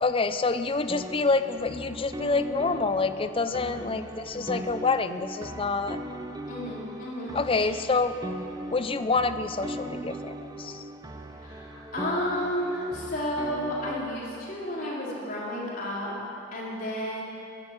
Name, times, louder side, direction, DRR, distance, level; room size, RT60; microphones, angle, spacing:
voice 1, 0.0-6.0 7.3-8.2 8.7-10.8, left 3 dB, 25° left, 11 dB, 0.5 m, -27 dB
Piano and effects track loop, 0.9-13.9, right 1 dB, 20° right, 0.8 m, -39 dB
voice 2, 3.6-3.9 4.4-4.6 6.5-7.7 11.4-17.2, equal, 45° left, -5 dB, 3.8 m, -32 dB
16.0 x 11.5 x 7.4 m, 2.7 s
head